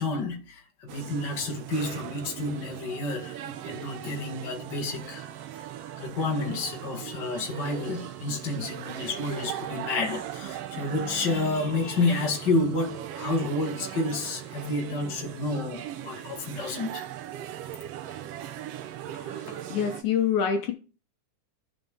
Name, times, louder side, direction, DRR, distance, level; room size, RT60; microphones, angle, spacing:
voice 1, 0.0-5.3 5.5-5.6 6.0-17.0, left 2 dB, 40° left, 2.1 m, -30 dB
sound 1, 0.9-20.0, right 11 dB, 75° right, 1.4 m, -39 dB
voice 2, 19.1-20.7, left 7 dB, 75° left, 2.3 m, -27 dB
13.5 x 5.2 x 3.5 m
omnidirectional pair, 3.6 m